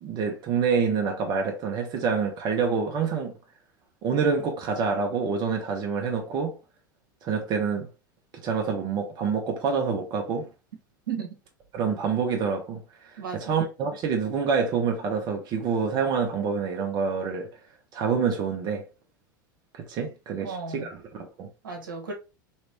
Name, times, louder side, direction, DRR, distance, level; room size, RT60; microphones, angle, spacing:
voice 1, 0.0-3.4 4.0-6.6 7.2-7.9 8.4-10.5 11.7-12.8 13.1-17.5 17.9-18.8 19.9-21.5, right 5 dB, 40° right, 0.9 m, -27 dB
voice 2, 20.4-20.9 21.6-22.1, right 5 dB, 75° right, 1.1 m, -34 dB
3.2 x 3.1 x 3.0 m
figure-of-eight pair, 85°, 11 cm